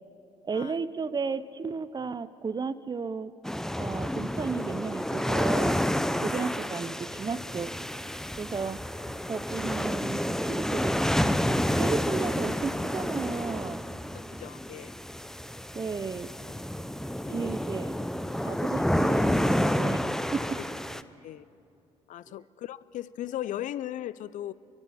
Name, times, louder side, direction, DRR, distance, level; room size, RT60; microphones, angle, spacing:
voice 1, 0.4-3.3 3.8-7.8 8.4-8.8 9.3-13.8 15.7-16.4 17.3-18.0 18.4-20.0 20.3-20.6 22.3-22.4, right 5 dB, 30° right, 14 dB, 0.8 m, -34 dB
sound 1, 3.4-21.0, equal, 5° left, 0.7 m, -29 dB
voice 2, 14.1-15.0 17.3-17.6 20.6-20.7 21.2-21.4 22.1-24.5, left 12 dB, 60° left, 19 dB, 0.6 m, -37 dB
29.5 x 23.0 x 4.3 m, 2.7 s
hypercardioid pair, 60°, 15 cm